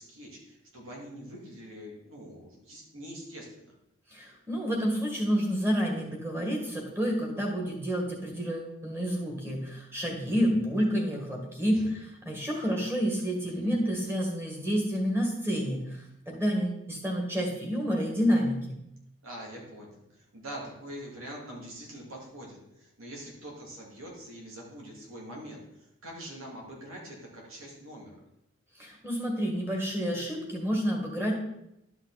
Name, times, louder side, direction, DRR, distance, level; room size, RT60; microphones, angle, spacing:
voice 1, 0.0-3.7 11.7-11.9 12.5-12.7 13.4-13.8 19.2-28.1, equal, 90° right, -2 dB, 2.9 m, -44 dB
voice 2, 4.1-11.8 12.3-18.7 28.8-31.3, equal, 10° right, 0 dB, 1.8 m, -29 dB
11.5 x 5.7 x 4.2 m, 0.83 s
head